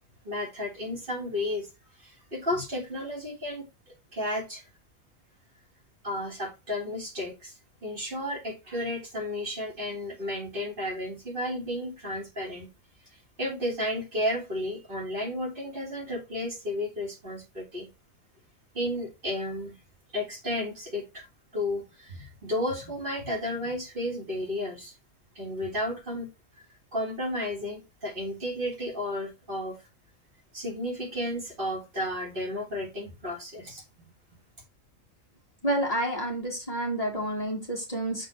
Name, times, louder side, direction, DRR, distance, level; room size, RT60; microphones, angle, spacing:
voice 1, 0.2-1.7 2.0-3.7 4.1-4.6 6.0-12.7 13.4-17.9 18.7-19.8 20.1-21.3 21.5-24.9 25.4-26.3 26.9-29.8 30.5-33.8, left 1 dB, 40° right, 0 dB, 2.1 m, -33 dB
voice 2, 35.6-38.3, right 1 dB, 30° left, -2 dB, 1.7 m, -29 dB
6.5 x 3.4 x 4.3 m, 0.26 s
omnidirectional pair, 1.4 m